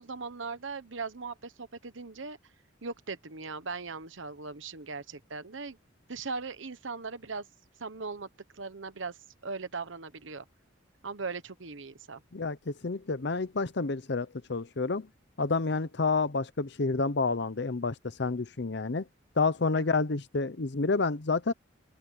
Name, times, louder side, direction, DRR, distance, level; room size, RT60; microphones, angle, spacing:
voice 1, 0.0-2.4 2.8-5.8 6.1-7.5 7.8-8.3 8.5-9.2 9.4-10.4 11.0-12.2 19.7-20.0, right 4 dB, 70° right, 1.1 m, -39 dB
voice 2, 12.3-15.1 15.4-19.1 19.4-21.5, left 4 dB, 55° left, 0.7 m, -29 dB
head